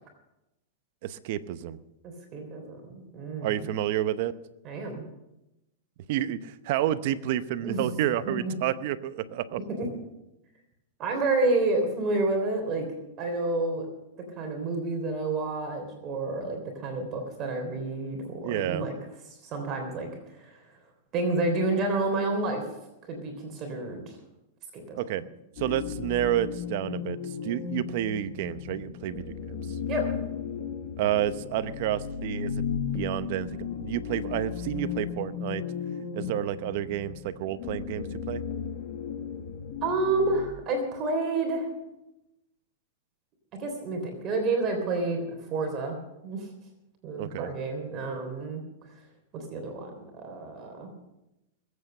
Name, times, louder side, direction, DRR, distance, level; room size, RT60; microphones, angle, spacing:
voice 1, 1.0-1.8 3.4-4.3 6.1-9.6 18.4-18.9 24.9-25.2 25.6-27.2 27.4-29.6 31.0-32.5 32.9-35.6 36.1-38.4 47.2-47.5, right 12 dB, 55° right, 13 dB, 0.9 m, -30 dB
voice 2, 2.0-3.7 4.6-5.0 7.6-8.1 8.4-8.5 9.7-9.9 11.0-12.9 13.2-13.9 14.4-18.9 19.4-20.6 21.1-22.6 23.1-24.2 24.7-25.0 29.9-30.0 39.8-41.7 43.6-46.0 46.2-46.5 47.0-48.6 49.3-50.9, right 2 dB, 35° right, 3 dB, 3.5 m, -29 dB
sound 1, 25.6-40.5, left 7 dB, 55° left, 2.0 m, -35 dB
20.5 x 8.5 x 6.7 m, 0.92 s
hypercardioid pair, 135°, 0 cm